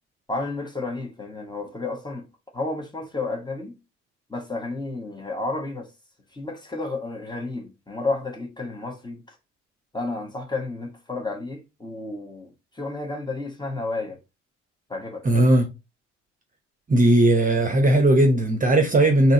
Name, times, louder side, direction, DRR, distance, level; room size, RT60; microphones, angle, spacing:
voice 1, 0.3-2.2 2.5-3.8 4.3-5.9 6.3-9.2 9.9-14.2 14.9-15.2, left 2 dB, 10° left, 1.3 m, -31 dB
voice 2, 15.2-15.7 16.9-19.3, right 1 dB, 20° right, 1.0 m, -18 dB
3.9 x 2.9 x 4.0 m
figure-of-eight pair, 45°, 36 cm